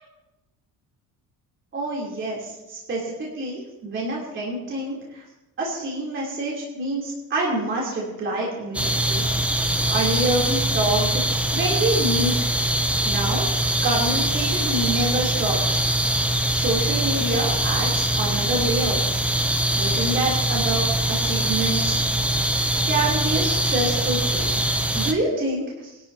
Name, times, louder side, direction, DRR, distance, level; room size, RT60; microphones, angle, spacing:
voice 1, 1.7-5.2 5.6-9.6 9.9-12.3 13.0-13.4 13.8-15.8 16.5-19.0 19.7-22.0 22.8-24.6 24.9-25.9, right 2 dB, 35° right, -4 dB, 3.3 m, -27 dB
sound 1, 8.7-25.1, right 1 dB, 5° right, 0.5 m, -23 dB
23.0 x 12.0 x 2.8 m, 0.98 s
cardioid pair, 175°, 36 cm